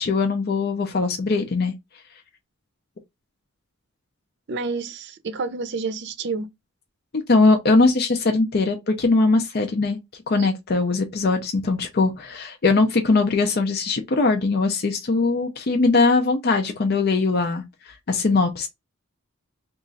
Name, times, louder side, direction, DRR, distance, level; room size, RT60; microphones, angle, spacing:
voice 1, 0.0-1.7 7.1-10.0 10.3-17.6 18.1-18.7, left 3 dB, 50° left, 0.5 m, -21 dB
voice 2, 4.5-6.5, right 4 dB, 55° right, 0.6 m, -29 dB
3.0 x 2.4 x 3.9 m
head